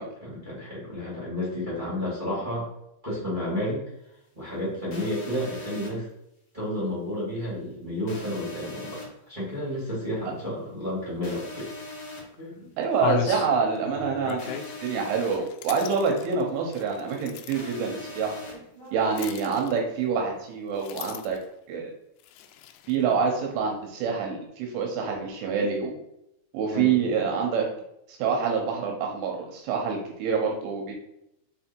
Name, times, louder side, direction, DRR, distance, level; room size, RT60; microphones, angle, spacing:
voice 1, 0.2-2.7 3.0-3.8 4.3-6.0 6.5-11.7 12.4-12.7 18.5-18.9 25.0-25.5 26.7-26.9 28.8-28.9, left 1 dB, 60° right, -7 dB, 0.5 m, -32 dB
sound 1, 4.9-5.9 8.1-9.0 11.2-12.2 14.4-15.4 17.5-18.5, left 2 dB, 50° left, 1.4 m, -40 dB
sound 2, 11.7-11.8 12.3-12.4 12.9-17.8 19.1-20.0 20.7-21.5 22.2-23.0, left 9 dB, 85° left, 2.8 m, -36 dB
voice 2, 12.8-18.3 18.9-21.4 21.7-21.9 22.9-25.9 26.5-27.7 28.1-30.9, right 5 dB, 80° right, 1 dB, 3.2 m, -26 dB
7.0 x 3.5 x 4.5 m, 0.82 s
omnidirectional pair, 5.9 m